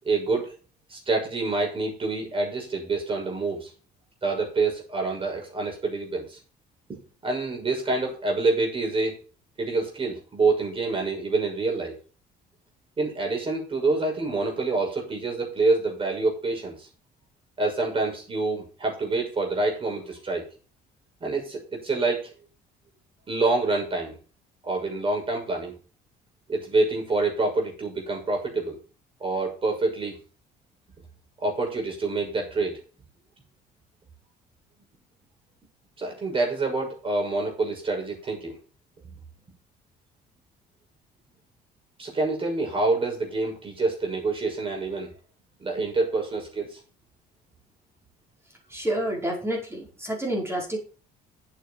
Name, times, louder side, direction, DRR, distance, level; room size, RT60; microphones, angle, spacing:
voice 1, 0.0-0.5 0.9-3.7 4.2-6.4 6.9-9.2 9.6-11.9 13.0-16.9 17.6-20.4 21.2-22.3 23.3-24.2 24.6-25.7 26.5-28.8 29.2-30.2 31.4-32.8 36.0-38.5 42.0-45.1 45.6-46.8, right 3 dB, 30° right, 2 dB, 6.2 m, -27 dB
voice 2, 48.7-50.8, right 1 dB, 15° right, -1 dB, 5.1 m, -29 dB
9.0 x 8.2 x 5.0 m, 0.36 s
cardioid pair, 110°, 17 cm